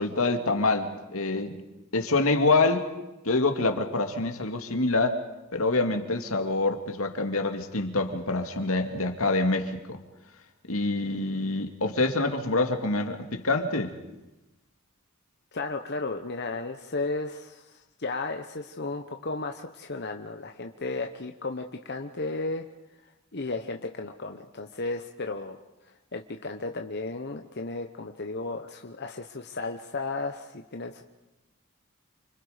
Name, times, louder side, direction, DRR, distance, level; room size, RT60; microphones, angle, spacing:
voice 1, 0.0-1.6 1.9-2.8 3.2-5.2 5.5-10.0 10.7-13.9, left 3 dB, 75° left, 5 dB, 2.3 m, -26 dB
voice 2, 15.5-22.7 23.3-31.0, left 3 dB, 50° left, 4 dB, 1.1 m, -34 dB
29.5 x 25.5 x 5.1 m, 1.0 s
head